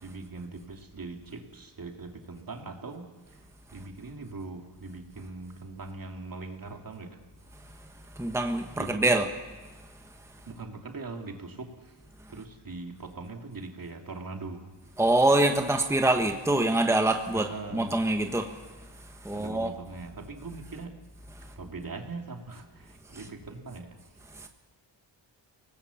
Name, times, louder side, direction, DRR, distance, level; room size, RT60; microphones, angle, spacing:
voice 1, 0.0-3.4 3.7-7.2 8.8-9.2 10.5-11.9 12.3-14.6 17.3-18.0 19.3-20.9 21.6-24.0, right 3 dB, 50° right, 3 dB, 2.9 m, -41 dB
voice 2, 8.2-9.3 15.0-17.5 17.7-18.5 19.2-19.7 24.4-24.5, right 2 dB, 5° right, 4 dB, 1.4 m, -24 dB
25.0 x 19.0 x 7.2 m, 1.3 s
cardioid pair, 70°, 44 cm